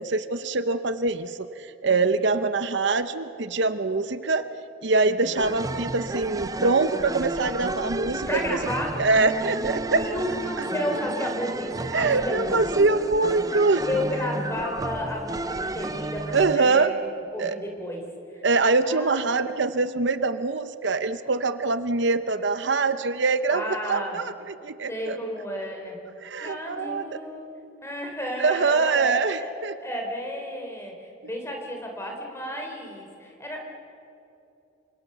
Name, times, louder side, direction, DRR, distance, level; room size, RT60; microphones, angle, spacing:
voice 1, 0.0-4.4 4.8-8.6 9.0-10.0 10.6-10.7 11.9-13.8 16.3-16.9 17.4-17.6 18.4-25.2 26.2-27.2 28.4-29.8, right 3 dB, 60° right, 11 dB, 0.8 m, -24 dB
voice 2, 5.0-5.6 8.3-9.1 9.4-12.8 13.9-18.0 18.3-18.4 18.8-19.6 23.5-24.2 24.9-26.0 26.4-27.5 27.8-29.5 29.8-30.9 31.2-33.7, left 1 dB, 15° left, 2 dB, 3.8 m, -33 dB
sound 1, 5.4-16.6, right 2 dB, 20° right, 0.6 m, -32 dB
28.0 x 25.0 x 6.9 m, 2.9 s
head